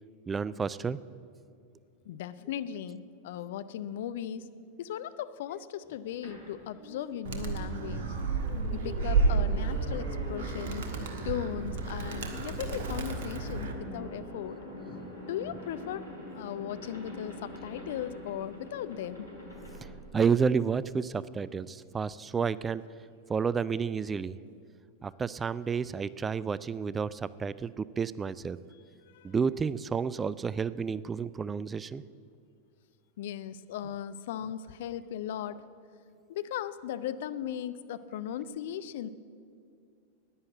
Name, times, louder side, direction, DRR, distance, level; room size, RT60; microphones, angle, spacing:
voice 1, 0.3-1.0 20.1-22.8 23.3-24.3 25.0-28.6 29.2-32.0, right 6 dB, 15° right, 18 dB, 0.3 m, -30 dB
voice 2, 2.0-4.5 4.8-8.0 8.7-14.6 15.2-16.1 16.3-19.3 29.1-29.3 33.2-35.7 36.3-39.1, left 10 dB, 55° left, 14 dB, 0.5 m, -37 dB
sound 1, 6.2-20.8, left 1 dB, 80° left, 3.5 m, -44 dB
Animal, 7.2-13.7, right 4 dB, 55° right, 1.5 m, -31 dB
11.0 x 9.7 x 9.1 m, 2.3 s
figure-of-eight pair, 90°, 0 cm